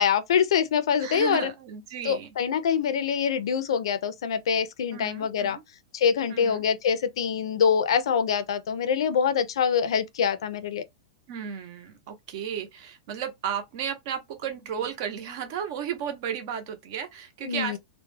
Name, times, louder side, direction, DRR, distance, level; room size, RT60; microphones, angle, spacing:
voice 1, 0.0-1.5 2.0-5.6 5.9-10.8 17.4-17.8, left 7 dB, 70° left, 0.5 m, -25 dB
voice 2, 1.0-2.3 4.9-5.6 6.3-6.6 11.3-17.8, right 8 dB, 40° right, 0.6 m, -34 dB
2.3 x 2.1 x 3.1 m
supercardioid pair, 170°, 3 cm